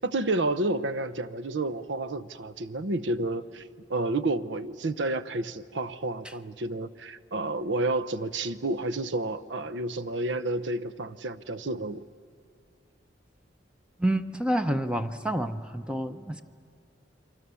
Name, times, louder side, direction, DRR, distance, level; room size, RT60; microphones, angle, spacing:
voice 1, 0.0-12.0, right 2 dB, 75° right, 14 dB, 0.8 m, -30 dB
voice 2, 14.0-16.4, right 1 dB, 5° right, 9 dB, 0.7 m, -28 dB
28.5 x 24.0 x 7.0 m, 2.5 s
head